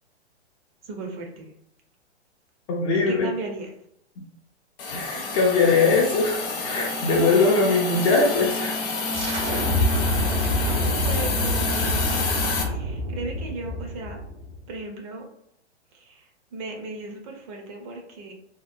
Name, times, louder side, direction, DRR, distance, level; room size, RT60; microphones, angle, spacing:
voice 1, 0.9-1.5 3.1-3.7 10.6-12.4 12.7-14.2 14.7-15.2 15.9-16.2 16.5-18.3, right 3 dB, 30° right, 2 dB, 0.5 m, -36 dB
voice 2, 2.7-3.3 4.9-8.8, left 3 dB, 25° left, -1 dB, 0.4 m, -21 dB
Hiss, 4.8-12.6, left 4 dB, 55° left, 0.8 m, -29 dB
sound 1, 9.1-14.6, left 1 dB, 80° right, 0.8 m, -26 dB
2.8 x 2.0 x 2.4 m, 0.75 s
hypercardioid pair, 120°, 34 cm